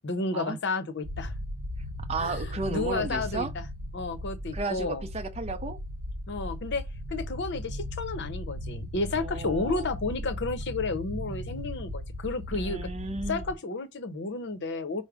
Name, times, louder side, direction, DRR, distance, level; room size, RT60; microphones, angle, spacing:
voice 1, 0.0-1.3 2.2-3.6 3.9-5.0 6.3-6.8 7.1-12.9 13.3-15.0, left 3 dB, 55° left, 0.7 m, -32 dB
sound 1, 1.0-13.6, left 1 dB, 65° right, 0.7 m, -37 dB
voice 2, 2.1-3.5 4.5-5.8 9.2-9.9 12.5-13.4, right 3 dB, 30° right, 0.5 m, -34 dB
4.8 x 2.1 x 4.7 m
head